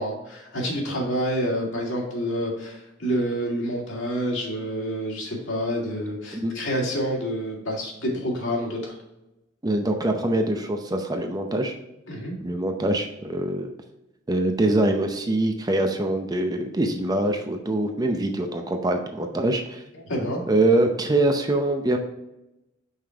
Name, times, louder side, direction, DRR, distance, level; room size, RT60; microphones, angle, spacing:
voice 1, 0.0-9.0 12.1-12.4 20.1-20.4, equal, 70° left, -3 dB, 2.2 m, -28 dB
voice 2, 9.6-11.8 12.4-13.7 14.3-19.8 20.2-22.0, right 1 dB, 20° right, 4 dB, 0.6 m, -24 dB
5.6 x 5.1 x 3.4 m, 0.93 s
head